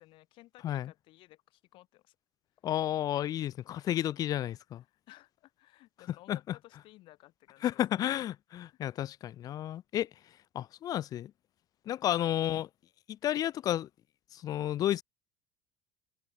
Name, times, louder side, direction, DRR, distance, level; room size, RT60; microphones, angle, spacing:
voice 1, 0.0-2.1 3.8-4.1 4.9-8.2 8.7-8.8 12.0-12.4, left 18 dB, 50° left, 6.8 m, -57 dB
voice 2, 2.6-4.8 6.3-6.4 7.6-10.1 10.5-11.3 11.9-12.7 13.2-13.9 14.3-15.0, left 12 dB, 35° left, 1.1 m, -31 dB
open air
cardioid pair, 160°, 11 cm